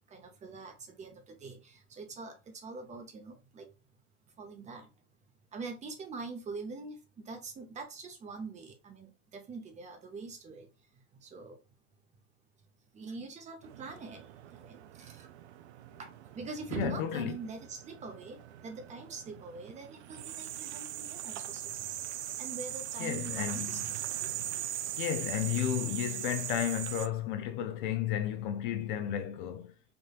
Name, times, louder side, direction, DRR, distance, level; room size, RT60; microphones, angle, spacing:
voice 1, 0.1-3.6 4.4-4.9 5.5-7.0 7.2-10.7 11.2-11.6 12.9-14.2 14.6-15.3 16.0-16.1 16.3-18.4 18.6-22.0 22.4-23.8 24.2-24.6, right 3 dB, 20° right, 0.7 m, -44 dB
sound 1, 13.6-27.1, right 12 dB, 70° right, 0.5 m, -40 dB
voice 2, 16.7-17.4 23.0-23.8 25.0-29.7, left 10 dB, 45° left, 0.4 m, -33 dB
3.5 x 2.6 x 2.4 m
hypercardioid pair, 100°, 35 cm